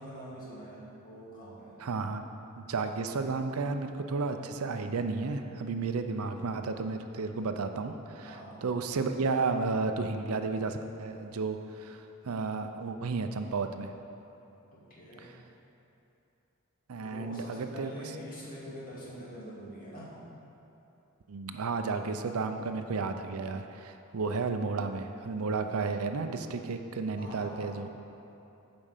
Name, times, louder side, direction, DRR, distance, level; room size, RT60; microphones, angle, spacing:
voice 1, 0.0-1.8 8.2-8.6 14.7-15.3 17.0-20.2 27.2-27.8, equal, 40° left, -6 dB, 2.2 m, -45 dB
voice 2, 1.8-2.2 2.6-13.9 15.2-15.4 16.9-17.9 21.3-27.9, right 4 dB, 80° right, 7 dB, 0.5 m, -33 dB
8.9 x 5.3 x 6.5 m, 2.9 s
head